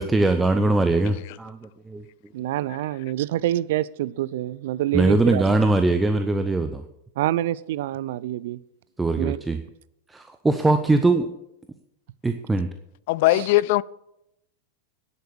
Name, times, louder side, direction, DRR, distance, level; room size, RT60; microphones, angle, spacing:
voice 1, 0.0-2.0 4.9-6.8 9.0-9.6 10.1-11.3 12.2-12.7, right 2 dB, 10° right, 0.6 m, -21 dB
voice 2, 2.3-5.4 7.2-8.6 9.2-9.4 13.3-13.5, right 14 dB, 55° right, 0.3 m, -26 dB
voice 3, 13.1-13.8, left 18 dB, 50° left, 0.3 m, -20 dB
10.5 x 8.1 x 7.0 m
figure-of-eight pair, 90°, 0 cm